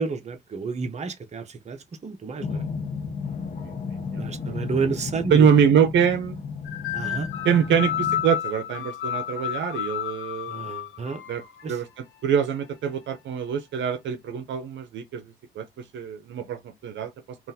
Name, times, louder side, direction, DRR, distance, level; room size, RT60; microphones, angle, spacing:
voice 1, 0.0-2.6 4.2-5.5 6.9-7.3 10.5-11.2 11.6-11.8, right 5 dB, 35° right, 0.8 m, -30 dB
sound 1, 2.4-8.2, left 5 dB, 45° left, 0.8 m, -33 dB
voice 2, 3.6-4.2 5.3-6.4 7.4-10.6 11.3-11.4 11.7-15.2 15.6-15.7 15.9-17.4, right 7 dB, 70° right, 0.6 m, -24 dB
sound 2, 6.6-11.7, left 11 dB, 80° left, 0.8 m, -31 dB
3.7 x 2.5 x 2.7 m
cardioid pair, 90°, 20 cm